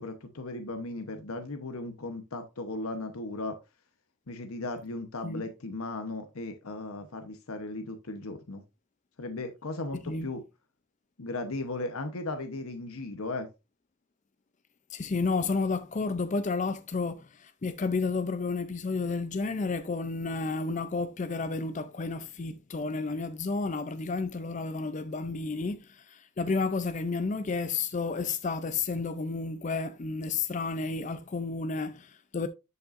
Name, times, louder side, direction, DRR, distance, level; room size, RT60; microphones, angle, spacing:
voice 1, 0.0-3.6 4.3-8.6 9.2-10.4 11.2-13.5, left 2 dB, 80° left, 0.9 m, -36 dB
voice 2, 14.9-32.5, left 4 dB, 35° left, 0.4 m, -31 dB
11.0 x 5.4 x 2.5 m
head